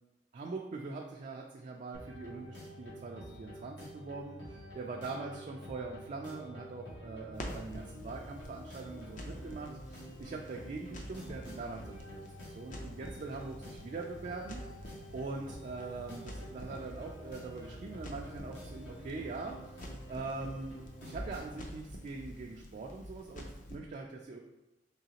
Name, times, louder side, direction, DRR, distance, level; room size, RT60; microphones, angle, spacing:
voice 1, 0.3-14.6 15.1-19.5 20.1-20.7 21.0-24.4, right 3 dB, 45° right, 0 dB, 0.3 m, -42 dB
sound 1, 1.9-21.6, equal, 80° left, 1.3 m, -49 dB
Crackle, 7.3-23.8, equal, 45° left, 0.5 m, -48 dB
3.7 x 3.1 x 2.8 m, 1.0 s
head